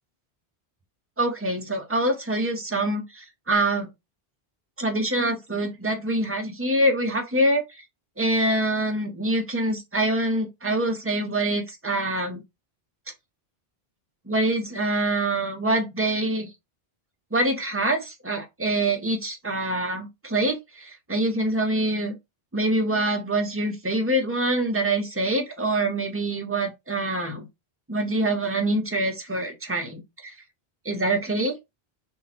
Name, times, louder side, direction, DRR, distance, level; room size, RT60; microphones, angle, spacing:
voice 1, 1.2-3.9 4.8-7.6 8.2-12.4 14.3-16.5 17.3-22.1 22.5-27.5 27.9-30.3 30.8-31.5, right 1 dB, 15° right, 0.6 m, -25 dB
2.9 x 2.2 x 4.0 m
omnidirectional pair, 1.0 m